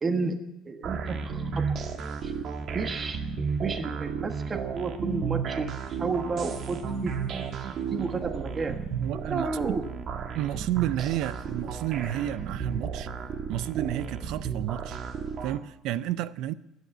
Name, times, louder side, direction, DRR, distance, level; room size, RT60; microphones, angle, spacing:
voice 1, 0.0-0.4 0.6-2.3 2.7-3.2 3.6-8.8 9.1-9.8, right 4 dB, 25° right, 1.3 m, -32 dB
sound 1, 0.8-15.6, right 6 dB, 50° right, 1.5 m, -33 dB
voice 2, 9.0-9.6 10.3-13.1 13.5-15.0 15.4-16.5, right 13 dB, 70° right, 0.6 m, -31 dB
13.0 x 9.5 x 8.7 m
cardioid pair, 110°, 0 cm